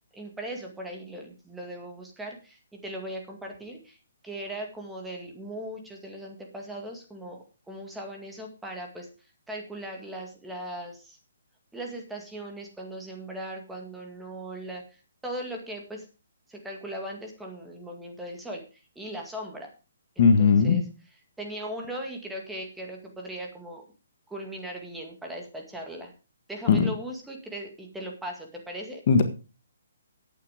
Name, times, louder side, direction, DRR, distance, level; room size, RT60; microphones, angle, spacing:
voice 1, 0.1-4.0 4.2-9.1 9.5-11.2 11.7-16.1 16.5-18.6 19.0-19.7 20.2-20.8 21.4-23.8 24.3-26.1 26.5-29.0, right 1 dB, 5° right, 1 dB, 2.0 m, -38 dB
voice 2, 20.2-20.8 26.7-26.9 29.1-29.2, left 5 dB, 45° left, 8 dB, 1.6 m, -18 dB
11.0 x 8.9 x 5.0 m, 0.33 s
hypercardioid pair, 160°, 0 cm